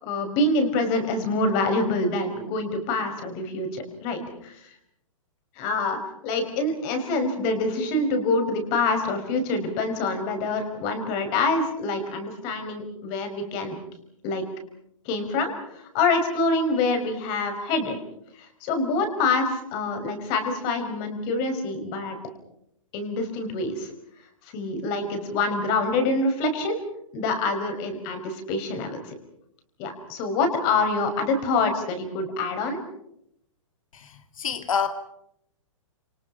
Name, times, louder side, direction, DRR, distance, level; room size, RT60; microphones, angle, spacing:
voice 1, 0.0-4.5 5.6-13.8 14.2-14.4 15.1-15.5 15.9-18.0 18.4-22.2 22.9-23.9 24.5-26.8 27.1-29.0 29.8-32.8, left 3 dB, 25° left, 6 dB, 5.4 m, -26 dB
voice 2, 33.9-34.9, left 7 dB, 80° left, 8 dB, 2.3 m, -28 dB
30.0 x 28.5 x 5.8 m, 0.76 s
hypercardioid pair, 170°, 17 cm